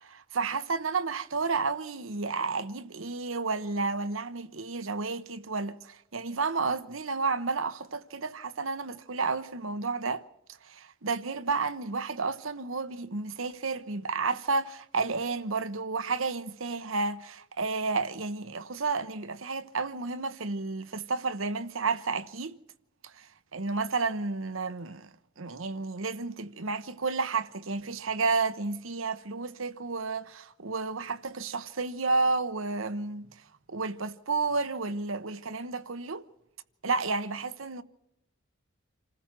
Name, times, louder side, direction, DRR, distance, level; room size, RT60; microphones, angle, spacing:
voice 1, 0.0-10.2 10.6-22.5 23.2-23.3 23.5-25.1 25.4-33.3 33.7-36.2 36.8-37.8, right 4 dB, 80° right, 1.1 m, -31 dB
28.0 x 15.0 x 6.1 m
head